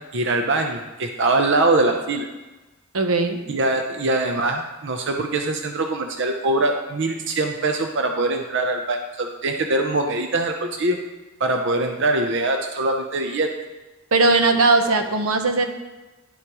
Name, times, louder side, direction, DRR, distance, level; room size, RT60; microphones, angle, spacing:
voice 1, 0.1-2.3 3.5-11.0 11.4-13.5, right 2 dB, 60° right, 4 dB, 0.7 m, -23 dB
voice 2, 2.9-3.4 14.1-15.7, right 3 dB, 85° right, 6 dB, 0.9 m, -18 dB
11.5 x 8.1 x 3.0 m, 1.1 s
head